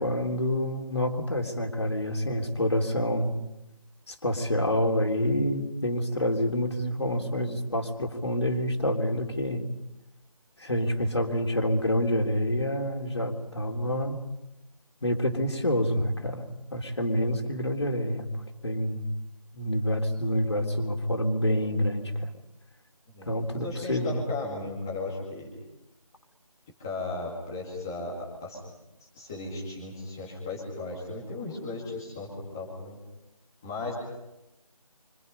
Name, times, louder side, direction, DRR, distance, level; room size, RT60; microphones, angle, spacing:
voice 1, 0.0-3.4 4.1-9.7 10.6-14.2 15.0-19.1 19.5-22.3 23.3-24.2, equal, 45° left, 3 dB, 3.7 m, -27 dB
voice 2, 23.1-25.5 26.8-28.6 29.0-33.0 33.6-33.9, left 3 dB, 5° left, -3 dB, 2.2 m, -36 dB
29.5 x 26.0 x 5.4 m, 0.94 s
figure-of-eight pair, 180°, 19 cm